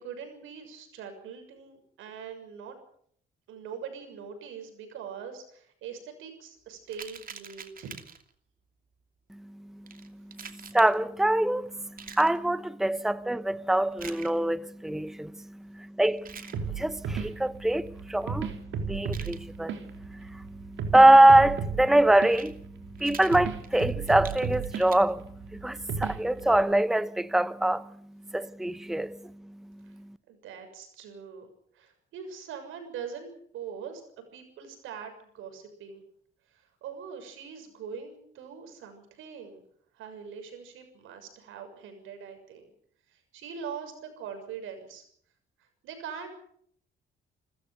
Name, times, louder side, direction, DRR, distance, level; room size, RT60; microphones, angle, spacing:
voice 1, 0.0-2.8 3.5-7.9 29.8-29.9 30.3-31.5 31.7-34.0 34.3-36.0 36.5-39.6 39.9-42.7 43.1-45.0 45.8-46.3, right 7 dB, 90° right, 6.7 m, -42 dB
sound 1, 6.9-8.3 9.9-10.9 12.0-12.4 13.9-14.4 16.1-16.6 19.0-19.4 22.2-22.5 23.0-25.0, right 6 dB, 45° right, 2.7 m, -45 dB
voice 2, 10.5-22.6 23.0-25.2 25.5-27.9 28.3-29.2, right 1 dB, ahead, 0.9 m, -24 dB
sound 2, 16.5-26.6, right 6 dB, 75° right, 3.7 m, -35 dB
28.5 x 15.0 x 8.2 m
cardioid pair, 90°, 20 cm